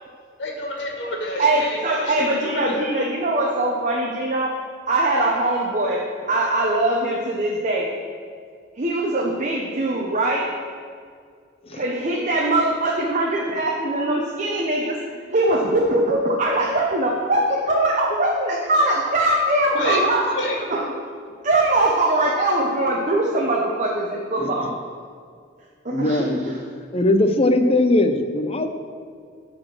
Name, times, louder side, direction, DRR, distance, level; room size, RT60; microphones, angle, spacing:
voice 1, 0.4-2.2 2.4-2.9 19.7-20.6, left 1 dB, 80° left, -1 dB, 1.9 m, -28 dB
voice 2, 1.4-4.5 4.9-7.9 8.7-10.5 11.7-15.0 15.3-20.2 20.7-20.9 21.4-24.8 25.8-26.6, right 1 dB, 45° right, -1 dB, 0.9 m, -22 dB
voice 3, 25.9-26.5 26.9-28.7, left 2 dB, 35° left, 7 dB, 0.7 m, -20 dB
12.5 x 4.3 x 6.1 m, 2.2 s
head